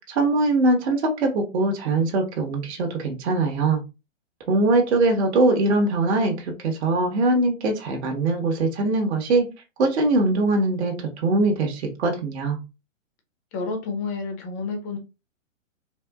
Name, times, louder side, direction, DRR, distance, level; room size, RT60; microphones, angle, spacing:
voice 1, 0.1-3.8 4.5-9.4 9.8-12.6, right 2 dB, 55° right, 2 dB, 1.4 m, -22 dB
voice 2, 13.5-15.0, left 4 dB, 15° left, 4 dB, 0.4 m, -30 dB
4.2 x 2.6 x 2.4 m, 0.27 s
hypercardioid pair, 140°, 39 cm